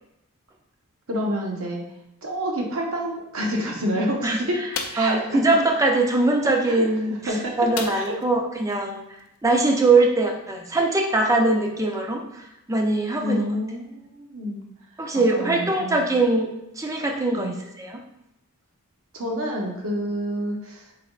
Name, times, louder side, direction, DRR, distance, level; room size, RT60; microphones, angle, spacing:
voice 1, 1.1-1.8 2.2-4.7 4.9-5.4 6.6-7.6 7.9-8.1 13.2-14.6 15.1-16.1 17.3-17.5 19.1-20.9, equal, 65° right, 0 dB, 0.8 m, -28 dB
sound 1, 4.7-5.1 7.7-8.3 8.7-8.8 9.2-9.4, left 6 dB, 70° left, 0.4 m, -32 dB
voice 2, 5.0-9.0 9.4-13.5 15.0-18.0, right 2 dB, 15° right, 2 dB, 0.4 m, -22 dB
4.3 x 3.4 x 2.3 m, 0.88 s
head